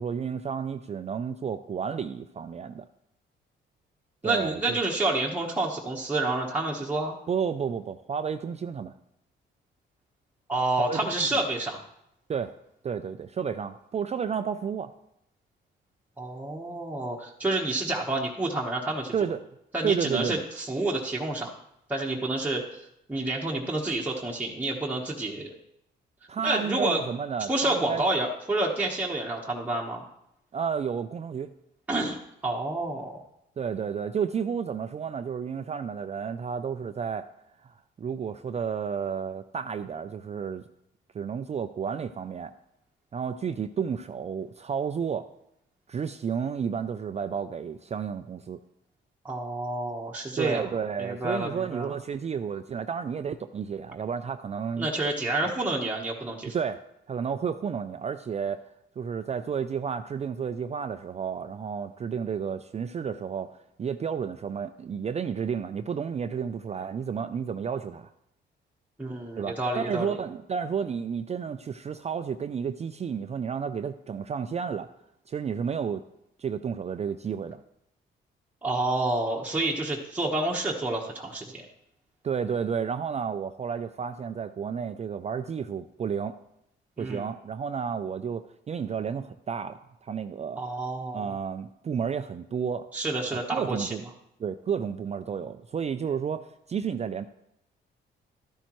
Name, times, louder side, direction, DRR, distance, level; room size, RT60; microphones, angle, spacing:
voice 1, 0.0-2.8 4.2-4.8 7.3-8.9 10.8-11.3 12.3-12.5 12.8-14.9 19.1-19.4 19.8-20.4 26.3-28.0 30.5-31.5 33.6-37.3 37.6-40.6 41.1-42.5 43.1-45.3 45.9-48.6 50.4-54.9 55.4-55.5 56.5-56.8 57.1-58.6 59.0-68.1 69.4-74.9 75.3-76.1 76.4-77.6 82.2-86.4 87.0-90.6 91.1-92.9 93.3-94.0 94.4-97.3, right 7 dB, 35° right, 10 dB, 0.4 m, -31 dB
voice 2, 4.2-7.1 10.5-11.8 16.2-19.1 19.7-21.5 21.9-22.8 23.1-25.5 26.4-27.0 27.4-30.0 31.9-33.2 49.2-50.7 51.0-51.9 54.8-56.5 69.0-70.1 78.6-81.7 87.0-87.3 90.6-91.3 92.9-93.9, right 2 dB, 10° right, -3 dB, 1.2 m, -29 dB
12.5 x 10.0 x 3.1 m, 0.79 s
cardioid pair, 90°, 20 cm